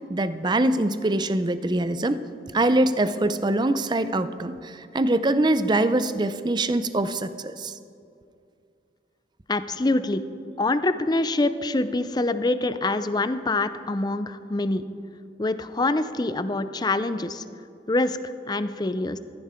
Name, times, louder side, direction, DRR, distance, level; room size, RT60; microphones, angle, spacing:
voice 1, 0.1-2.2 2.5-7.7, right 1 dB, 25° right, 12 dB, 0.5 m, -23 dB
voice 2, 9.5-10.2 10.6-14.8 15.4-17.4 17.9-18.2 18.5-19.2, left 2 dB, 25° left, 12 dB, 0.5 m, -25 dB
15.0 x 14.0 x 4.4 m, 2.4 s
head